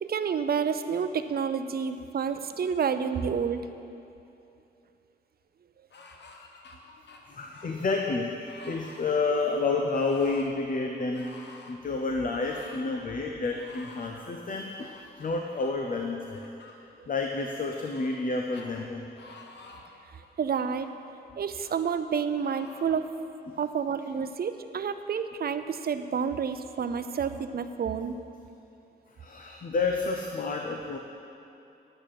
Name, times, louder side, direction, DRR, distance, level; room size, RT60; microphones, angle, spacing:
voice 1, 0.0-3.7 20.4-20.9 21.4-23.1 23.6-28.2, right 6 dB, 60° right, 10 dB, 0.6 m, -29 dB
sound 1, 5.9-6.8 7.1-8.1 8.4-9.1 9.9-10.5 11.1-11.8 12.4-12.9 13.5-14.2 14.8-15.7 16.3-16.7 17.4-18.3 18.5-18.7 19.2-19.9 20.5-21.0 21.6-21.8 22.4-23.0, left 3 dB, 75° left, 1.1 m, -50 dB
voice 2, 6.7-11.3 11.7-16.4 17.1-19.1 23.5-23.6 29.2-31.0, left 3 dB, 50° left, 2 dB, 0.7 m, -30 dB
10.0 x 9.0 x 5.9 m, 2.7 s
wide cardioid pair, 105°, 18 cm